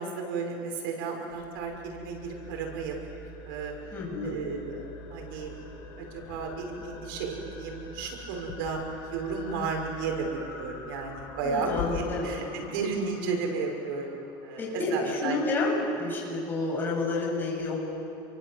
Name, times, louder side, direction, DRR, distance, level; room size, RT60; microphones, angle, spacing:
voice 1, 0.0-2.9 3.4-3.7 4.2-5.7 6.0-14.2 14.4-15.4, right 4 dB, 85° right, 2 dB, 5.9 m, -33 dB
sound 1, 1.3-11.9, left 4 dB, 75° left, 5.2 m, -46 dB
sound 2, 2.2-15.2, left 3 dB, 45° left, 7.5 m, -48 dB
voice 2, 3.9-4.4 11.4-12.3 14.6-15.7 16.0-17.8, left 3 dB, 20° left, -3 dB, 7.4 m, -30 dB
30.0 x 24.0 x 7.9 m, 2.7 s
cardioid pair, 160°, 11 cm